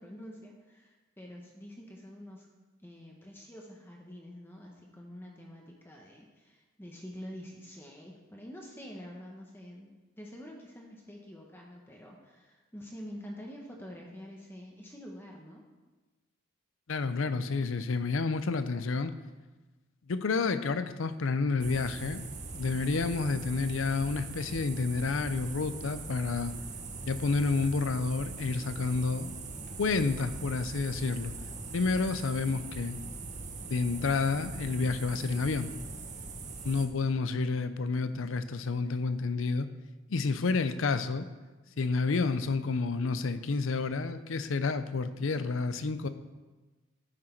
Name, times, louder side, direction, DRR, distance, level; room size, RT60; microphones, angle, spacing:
voice 1, 0.0-2.5 2.8-15.6, equal, 10° left, -1 dB, 0.9 m, -47 dB
voice 2, 16.9-19.1 20.1-22.2 22.5-26.5 27.0-29.4 29.8-31.3 31.7-33.0 33.7-35.7 36.4-39.7 40.1-41.3 41.8-46.1, left 4 dB, 65° left, 12 dB, 0.5 m, -30 dB
sound 1, 21.6-36.9, right 3 dB, 35° right, 0.9 m, -41 dB
10.5 x 6.3 x 4.5 m, 1.2 s
head